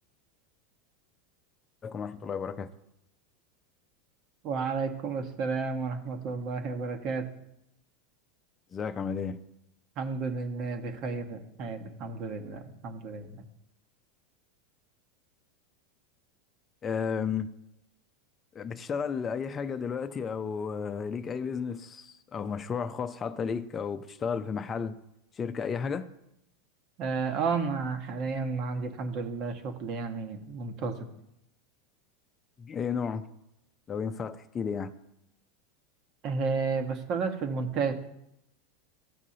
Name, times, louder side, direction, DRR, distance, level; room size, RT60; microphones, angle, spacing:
voice 1, 1.8-2.7 8.7-9.4 16.8-17.5 18.5-24.9 25.4-26.1 32.6-33.3 33.9-34.9, left 6 dB, 25° left, 0.6 m, -33 dB
voice 2, 4.4-7.2 10.0-13.4 27.0-31.0 36.2-37.9, right 4 dB, 50° right, 1.3 m, -32 dB
14.0 x 6.0 x 2.9 m
hypercardioid pair, 90°, 0 cm